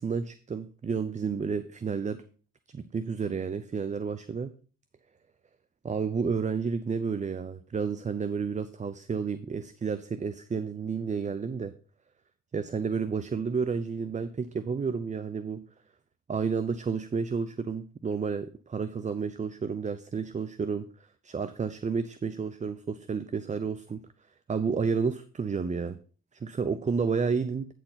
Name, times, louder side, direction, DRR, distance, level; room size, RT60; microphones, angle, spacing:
voice 1, 0.0-2.2 2.7-4.5 5.8-11.7 12.5-15.6 16.3-20.8 21.2-24.0 24.5-26.0 26.3-27.7, right 5 dB, 25° right, 12 dB, 0.6 m, -31 dB
9.2 x 4.5 x 5.8 m, 0.39 s
cardioid pair, 90°, 30 cm